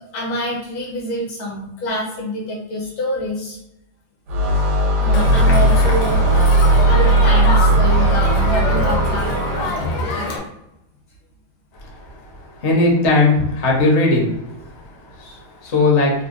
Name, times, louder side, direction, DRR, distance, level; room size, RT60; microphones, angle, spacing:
voice 1, 0.0-3.6 5.0-6.2 6.9-9.3, equal, 70° left, -2 dB, 1.6 m, -26 dB
sound 1, 4.3-10.0, right 1 dB, 85° right, 1.6 m, -16 dB
Crowd, 5.1-10.4, left 3 dB, 85° left, 1.6 m, -24 dB
voice 2, 12.6-14.3 15.2-16.1, left 2 dB, 55° left, -2 dB, 0.8 m, -17 dB
3.8 x 2.2 x 2.5 m, 0.83 s
omnidirectional pair, 2.3 m